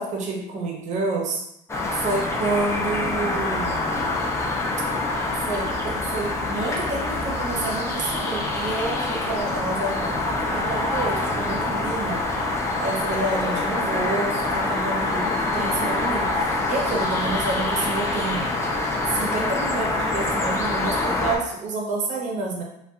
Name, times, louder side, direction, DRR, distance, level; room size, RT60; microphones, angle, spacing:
voice 1, 0.0-1.4 1.9-3.9 5.5-12.2 12.8-18.4 19.1-22.6, right 3 dB, 50° right, 0 dB, 0.7 m, -29 dB
sound 1, 1.7-21.4, left 2 dB, 15° left, 0.5 m, -25 dB
2.6 x 2.3 x 2.3 m, 0.78 s
supercardioid pair, 95°, 16 cm